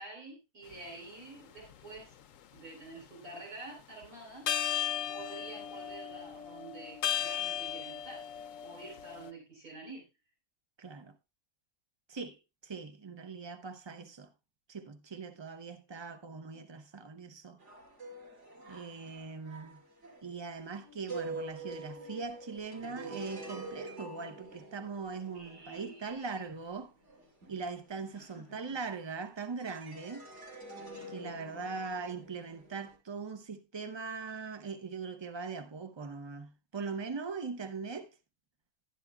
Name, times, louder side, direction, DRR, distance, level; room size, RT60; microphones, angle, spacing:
voice 1, 0.0-2.2 2.5-4.5 5.1-8.3 8.6-10.1 25.3-26.5 28.1-28.9 31.0-31.6, right 2 dB, 80° right, 4.2 m, -48 dB
sound 1, 0.7-0.9 1.6-2.6 4.0-4.1 4.5-9.3, left 10 dB, 65° left, 1.0 m, -36 dB
voice 2, 10.8-11.1 12.1-14.3 14.7-17.6 18.7-19.8 20.2-26.9 27.5-30.3 31.1-38.1, right 4 dB, 25° right, 0.6 m, -41 dB
sound 2, 17.6-29.2 29.6-33.0, right 2 dB, 50° right, 2.9 m, -47 dB
11.5 x 10.5 x 2.3 m
omnidirectional pair, 1.5 m